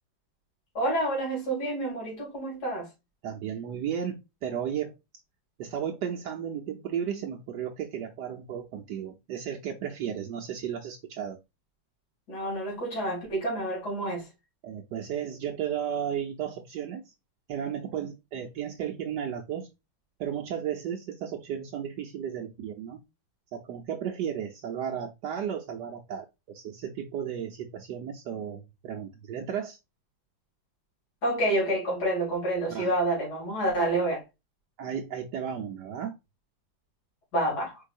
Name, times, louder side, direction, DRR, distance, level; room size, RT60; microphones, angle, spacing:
voice 1, 0.7-2.9 12.3-14.3 31.2-34.2 37.3-37.8, right 1 dB, 60° left, 3.1 m, -28 dB
voice 2, 3.2-4.2 4.4-4.9 5.6-11.4 14.6-17.1 17.5-19.7 20.2-23.0 23.5-29.8 32.7-32.9 34.8-36.1, right 8 dB, 70° right, 1.2 m, -34 dB
4.7 x 4.6 x 2.4 m
omnidirectional pair, 2.0 m